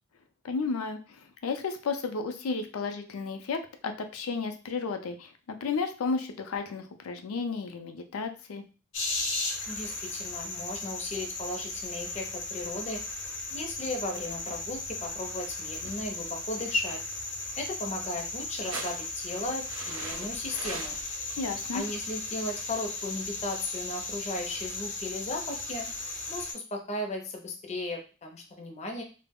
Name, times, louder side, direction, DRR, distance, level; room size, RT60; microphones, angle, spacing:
voice 1, 0.4-8.6 21.4-21.8, left 4 dB, 85° left, 7 dB, 0.4 m, -33 dB
sound 1, 8.9-26.5, left 3 dB, 60° left, 0.8 m, -36 dB
voice 2, 9.7-13.0 13.5-17.0 17.6-21.0 21.7-25.9 26.3-29.0, left 2 dB, 30° left, 2 dB, 0.5 m, -36 dB
sound 2, 14.2-14.8 15.8-16.2 18.5-19.2 19.7-21.4 22.0-22.1, right 3 dB, 65° right, 0.5 m, -41 dB
2.3 x 2.0 x 3.4 m, 0.35 s
head